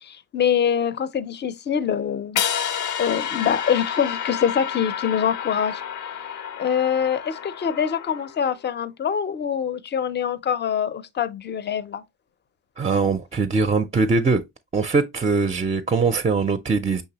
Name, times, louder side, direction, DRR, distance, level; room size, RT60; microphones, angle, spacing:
voice 1, 0.0-2.4 3.0-5.8 6.6-12.0, left 8 dB, 35° left, 0.5 m, -24 dB
sound 1, 2.4-8.5, left 9 dB, 80° left, 0.6 m, -30 dB
voice 2, 12.8-14.4 14.7-17.0, right 4 dB, 20° right, 0.4 m, -21 dB
5.5 x 3.2 x 2.8 m
cardioid pair, 90°, 30 cm